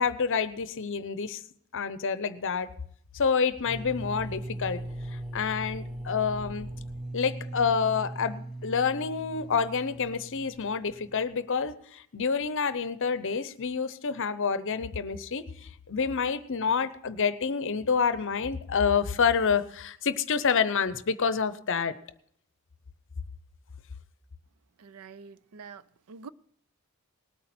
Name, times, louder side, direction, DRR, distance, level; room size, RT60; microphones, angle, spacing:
voice 1, 0.0-1.4 1.7-2.7 3.1-4.8 5.1-6.7 7.1-21.9, left 6 dB, 60° left, 0.7 m, -28 dB
sound 1, 3.6-11.4, right 1 dB, ahead, 1.0 m, -39 dB
voice 2, 24.8-26.3, right 5 dB, 80° right, 0.5 m, -46 dB
19.5 x 8.8 x 4.3 m
head